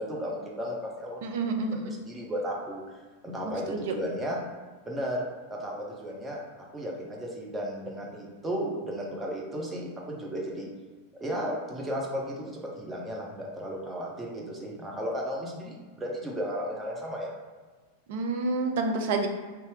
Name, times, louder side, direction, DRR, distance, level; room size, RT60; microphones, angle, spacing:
voice 1, 0.0-2.8 3.2-4.4 4.9-6.4 6.7-10.7 11.2-17.3, equal, 15° right, -2 dB, 0.6 m, -34 dB
voice 2, 1.2-1.9 3.4-3.9 18.1-19.3, right 3 dB, 50° right, 4 dB, 0.4 m, -29 dB
2.7 x 2.2 x 3.2 m, 1.4 s
figure-of-eight pair, 90°, 0 cm